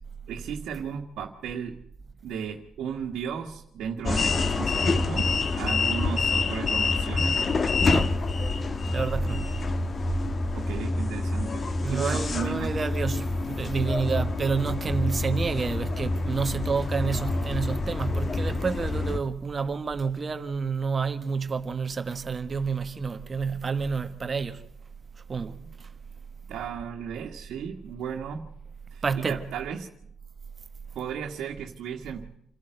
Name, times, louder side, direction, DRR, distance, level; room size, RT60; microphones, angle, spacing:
voice 1, 0.3-1.8 2.2-7.5 10.5-12.8 26.5-28.4 28.9-29.9 30.9-32.3, right 7 dB, 80° right, 1.7 m, -35 dB
sound 1, 4.0-19.2, left 3 dB, 40° left, 1.4 m, -27 dB
voice 2, 7.8-8.2 8.9-9.5 11.8-24.6 25.3-25.9 29.0-29.5, right 5 dB, 35° right, 1.3 m, -29 dB
28.0 x 12.0 x 7.9 m
cardioid pair, 90°, 0 cm